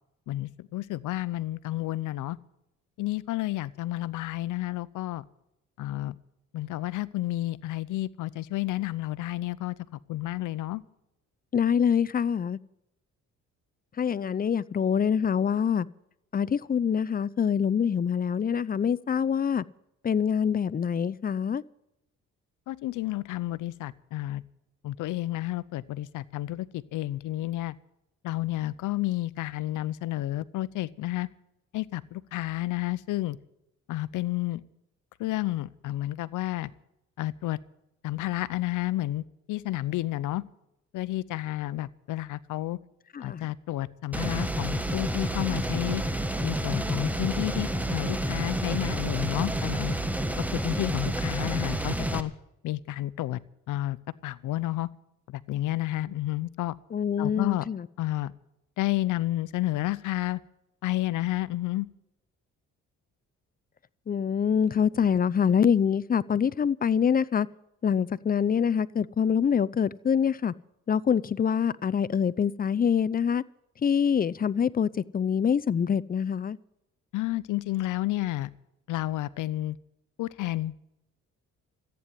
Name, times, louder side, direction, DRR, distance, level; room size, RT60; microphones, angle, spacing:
voice 1, 0.3-2.4 3.0-5.2 5.8-6.2 6.5-9.7 10.1-10.8 22.7-24.4 24.8-27.7 28.2-31.3 31.7-33.4 33.9-34.6 35.2-36.7 37.2-37.6 38.0-40.4 40.9-42.8 43.2-46.0 46.4-50.0 50.4-52.3 52.6-53.4 53.7-54.0 54.2-54.9 55.3-56.7 57.2-57.7 58.0-58.3 58.8-60.4 60.8-61.9 77.1-78.5 78.9-79.8 80.2-80.7, left 16 dB, 85° left, 0.7 m, -31 dB
voice 2, 11.5-12.6 14.0-15.9 16.3-19.6 20.0-21.6 43.1-43.4 56.9-57.9 64.1-67.5 67.8-70.5 70.9-73.4 73.8-76.6, left 7 dB, 30° left, 0.5 m, -25 dB
sound 1, 44.1-52.2, right 1 dB, 5° right, 1.4 m, -29 dB
14.5 x 9.2 x 9.7 m
cardioid pair, 90°, 30 cm